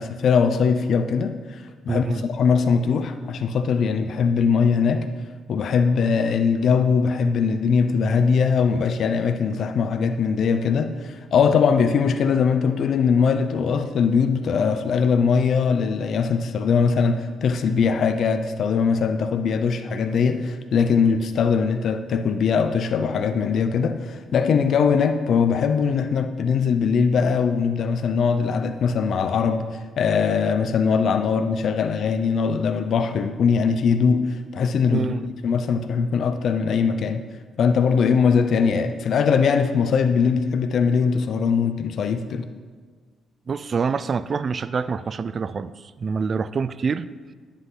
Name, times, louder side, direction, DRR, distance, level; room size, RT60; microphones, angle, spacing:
voice 1, 0.0-5.1 5.5-29.7 30.0-35.1 35.4-37.2 37.6-42.5, left 6 dB, 60° left, 9 dB, 0.6 m, -21 dB
voice 2, 1.9-2.2 34.9-35.2 43.5-47.1, right 5 dB, 45° right, 16 dB, 0.4 m, -26 dB
10.5 x 8.1 x 3.9 m, 1.5 s
cardioid pair, 90°, 0 cm